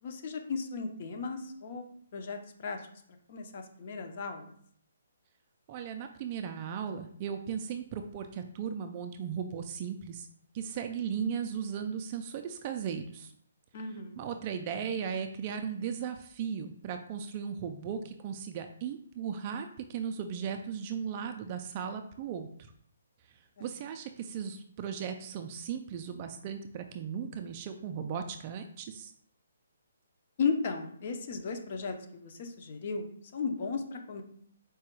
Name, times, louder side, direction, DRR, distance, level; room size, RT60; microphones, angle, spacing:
voice 1, 0.0-2.9 3.3-4.5 13.7-14.2 23.6-23.7 30.4-34.2, left 5 dB, 40° left, 5 dB, 0.6 m, -35 dB
voice 2, 5.7-10.3 10.5-13.3 14.2-22.7 23.3-29.1, right 7 dB, 25° right, 6 dB, 0.3 m, -37 dB
4.7 x 2.3 x 4.4 m, 0.63 s
hypercardioid pair, 170°, 0 cm